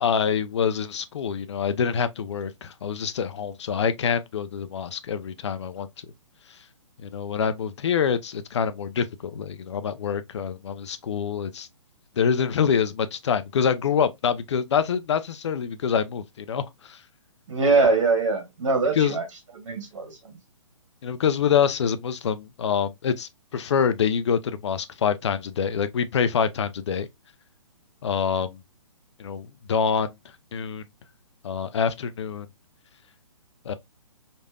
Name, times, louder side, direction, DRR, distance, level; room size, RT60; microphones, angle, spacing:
voice 1, 0.0-5.9 7.0-11.7 12.2-17.0 18.9-19.2 21.0-27.1 28.0-28.6 29.2-30.1 30.5-30.8 31.4-32.5 33.7-33.8, left 7 dB, 55° left, 0.4 m, -25 dB
voice 2, 17.5-19.2 19.6-20.1, right 4 dB, 60° right, 1.2 m, -22 dB
3.2 x 2.6 x 2.3 m
figure-of-eight pair, 130°, 17 cm